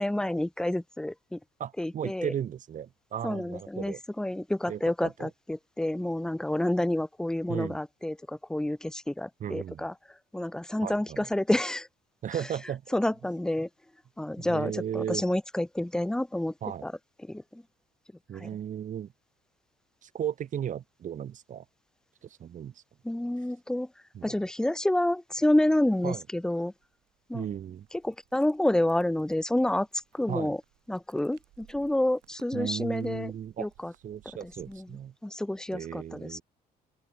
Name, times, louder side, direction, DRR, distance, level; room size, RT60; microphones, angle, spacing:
voice 1, 0.0-1.4 1.8-2.3 3.2-9.9 10.3-11.9 12.9-13.7 14.2-16.5 16.8-16.9 17.3-17.6 18.4-18.5 23.0-23.9 24.2-26.7 27.3-27.5 28.0-29.9 30.1-30.6 30.9-33.3 33.6-33.9 34.7-34.9 35.2-36.4, left 1 dB, 5° left, 0.6 m, -29 dB
voice 2, 1.6-4.0 4.7-5.3 7.5-7.8 9.4-9.9 10.8-11.3 12.2-13.0 14.4-15.2 16.6-16.9 18.3-19.1 20.0-21.7 22.2-22.8 24.1-24.4 26.0-26.2 27.3-27.9 30.3-30.5 32.5-33.7 34.0-35.1 35.7-36.4, right 9 dB, 50° right, 1.9 m, -35 dB
sound 1, 26.7-35.1, right 18 dB, 85° right, 6.5 m, -63 dB
open air
cardioid pair, 110°, 17 cm